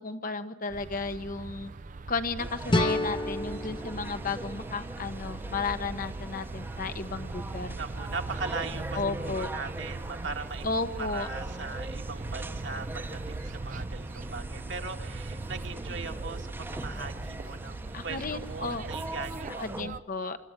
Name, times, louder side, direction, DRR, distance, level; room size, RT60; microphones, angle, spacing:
voice 1, 0.0-1.7 2.1-7.8 8.9-9.5 10.6-11.3 17.9-18.8 19.6-20.4, left 4 dB, 50° left, 9 dB, 1.1 m, -33 dB
sound 1, 0.7-20.0, right 3 dB, 45° right, 0.5 m, -40 dB
sound 2, 2.4-19.8, right 1 dB, 10° right, 0.9 m, -42 dB
sound 3, 2.7-5.6, left 2 dB, 25° left, 1.0 m, -31 dB
voice 2, 7.8-10.7 11.0-19.9, right 4 dB, 70° right, 4 dB, 1.9 m, -39 dB
25.5 x 14.0 x 9.0 m, 1.5 s
head